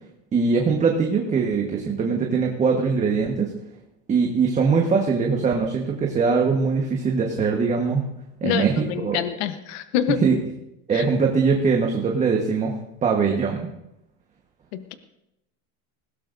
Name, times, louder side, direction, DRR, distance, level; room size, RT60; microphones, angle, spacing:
voice 1, 0.3-3.5 4.1-8.0 8.4-8.7 9.0-9.2 10.2-10.4 10.9-13.7, right 5 dB, 20° right, 0 dB, 1.4 m, -21 dB
voice 2, 8.4-10.2 10.9-11.0 14.7-14.9, left 8 dB, 70° left, 10 dB, 1.1 m, -26 dB
20.0 x 17.0 x 2.7 m, 0.87 s
supercardioid pair, 145°, 33 cm